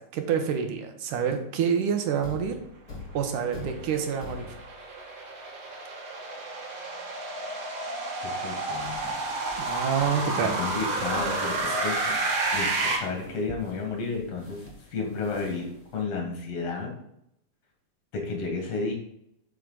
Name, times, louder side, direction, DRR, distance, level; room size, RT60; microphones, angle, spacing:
voice 1, 0.1-2.6 3.1-4.5 9.6-10.6, right 7 dB, 80° right, 6 dB, 2.5 m, -27 dB
Thump thud, 2.2-4.9, left 3 dB, 30° left, 3.1 m, -42 dB
sound 1, 3.4-12.9, right 2 dB, 55° right, 2.6 m, -30 dB
voice 2, 8.2-9.0 10.4-17.0 18.1-18.9, left 4 dB, 60° left, 1 dB, 2.6 m, -32 dB
sound 2, 8.8-16.0, equal, 15° right, 0.4 m, -47 dB
7.9 x 5.6 x 3.9 m, 0.76 s
omnidirectional pair, 3.7 m